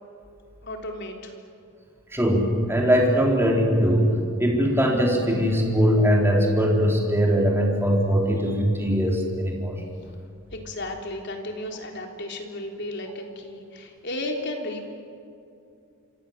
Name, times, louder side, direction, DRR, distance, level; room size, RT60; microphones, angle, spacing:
voice 1, 0.6-1.3 10.5-14.9, left 1 dB, 55° left, 2 dB, 3.6 m, -34 dB
voice 2, 2.1-4.1 4.4-9.7, equal, 10° right, -1 dB, 4.2 m, -21 dB
27.5 x 25.0 x 7.5 m, 2.6 s
head